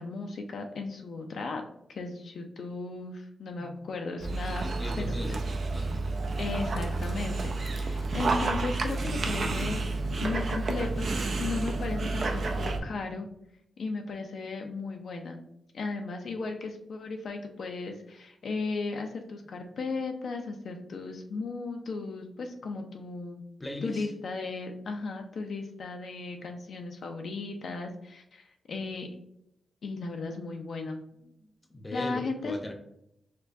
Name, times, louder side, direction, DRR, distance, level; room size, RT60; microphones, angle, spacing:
voice 1, 0.0-1.6 1.9-4.6 5.0-5.4 6.4-11.1 11.4-13.3 13.8-15.4 15.7-23.4 23.8-29.1 29.8-31.0 31.9-32.6, left 3 dB, 70° left, 4 dB, 0.4 m, -36 dB
Dog, 4.2-12.8, right 3 dB, 60° right, 0.5 m, -30 dB
voice 2, 4.5-6.0 23.6-24.1 31.4-32.7, left 1 dB, 20° left, 4 dB, 0.7 m, -38 dB
4.3 x 2.2 x 2.6 m, 0.77 s
cardioid pair, 75°, 0 cm